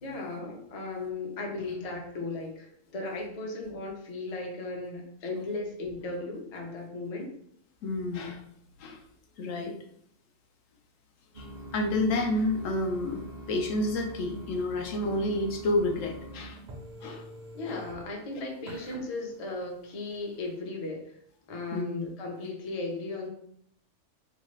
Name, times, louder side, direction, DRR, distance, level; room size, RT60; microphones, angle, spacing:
voice 1, 0.0-7.4 17.5-21.2 21.5-23.3, left 2 dB, 40° left, 0 dB, 0.5 m, -36 dB
voice 2, 7.8-8.4 8.8-9.0 9.4-9.7 11.4-13.2 13.5-16.6 17.0-17.3 17.7-17.8 21.7-22.1, left 2 dB, 80° left, 3 dB, 1.0 m, -29 dB
sound 1, 11.3-20.6, right 1 dB, 50° right, 0.5 m, -44 dB
3.0 x 2.3 x 3.1 m, 0.68 s
omnidirectional pair, 1.4 m